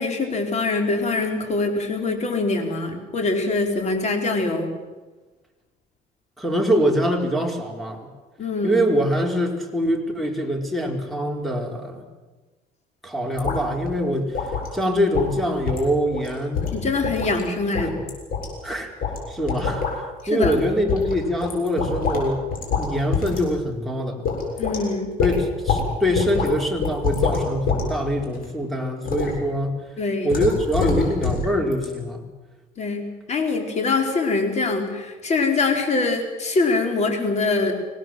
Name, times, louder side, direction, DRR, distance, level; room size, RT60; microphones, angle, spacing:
voice 1, 0.0-4.7 8.4-8.8 16.7-17.9 20.2-20.6 24.6-25.1 30.0-30.4 32.8-37.7, left 3 dB, 40° left, 4 dB, 4.5 m, -24 dB
voice 2, 6.4-8.1 8.6-12.0 13.0-14.4 14.7-16.7 17.8-18.1 18.6-18.9 19.3-19.9 20.3-22.4 22.8-24.2 25.2-29.8 30.2-32.2, equal, ahead, 3 dB, 4.3 m, -24 dB
sound 1, 13.4-13.6 13.9-14.0 14.3-14.7 15.1-15.3 15.7-15.9 16.1-16.3 16.5-17.4 17.7-18.5 19.0-19.2 19.5-19.9 20.4-20.6 20.9-22.3 22.5-22.9 23.1-23.4 23.7-23.8 24.2-24.8 25.2-25.8 26.1-26.5 26.8-27.8 28.2-28.5 29.0-29.3 30.3-31.5 31.7-31.8, left 5 dB, 60° left, 7.3 m, -25 dB
25.0 x 18.0 x 7.7 m, 1.2 s
cardioid pair, 110°, 17 cm